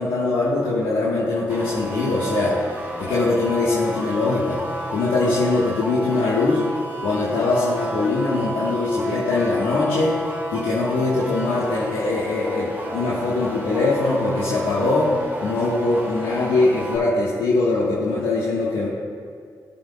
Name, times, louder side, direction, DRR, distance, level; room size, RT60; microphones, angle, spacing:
voice 1, 0.0-2.6 3.0-4.6 4.9-6.6 7.0-10.2 10.5-15.1 15.4-18.9, left 3 dB, 85° left, -7 dB, 1.4 m, -22 dB
sound 1, 1.5-17.0, right 1 dB, 20° right, 2.4 m, -32 dB
18.5 x 7.8 x 2.3 m, 2.2 s
supercardioid pair, 45°, 9 cm